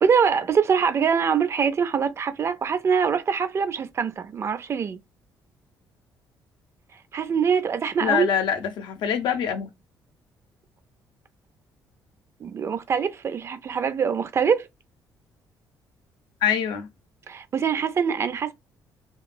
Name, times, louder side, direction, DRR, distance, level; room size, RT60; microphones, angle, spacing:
voice 1, 0.0-5.0 7.1-8.3 12.4-14.7 17.3-18.5, right 6 dB, 35° right, 0.4 m, -23 dB
voice 2, 8.0-9.7 16.4-16.9, left 8 dB, 75° left, 0.6 m, -24 dB
2.9 x 2.3 x 2.5 m
cardioid pair, 145°, 8 cm